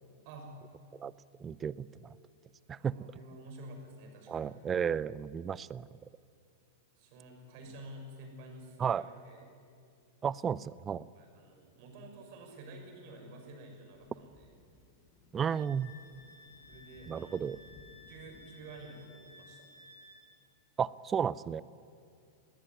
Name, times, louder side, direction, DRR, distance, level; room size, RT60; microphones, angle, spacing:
voice 1, 0.2-0.6 2.8-4.5 7.0-9.4 11.2-14.5 16.7-17.4 18.1-19.7, right 1 dB, 45° right, 3 dB, 6.0 m, -50 dB
voice 2, 1.4-1.9 2.7-3.0 4.3-5.9 8.8-9.1 10.2-11.0 15.3-15.9 17.1-17.6 20.8-21.6, right 7 dB, 20° right, 21 dB, 0.6 m, -33 dB
Thunder / Rain, 13.9-19.1, left 3 dB, 30° left, 6.4 m, -61 dB
Wind instrument woodwind instrument, 15.4-20.2, left 2 dB, 80° left, 6.6 m, -56 dB
19.5 x 19.0 x 9.8 m, 2.4 s
figure-of-eight pair, 95°, 0 cm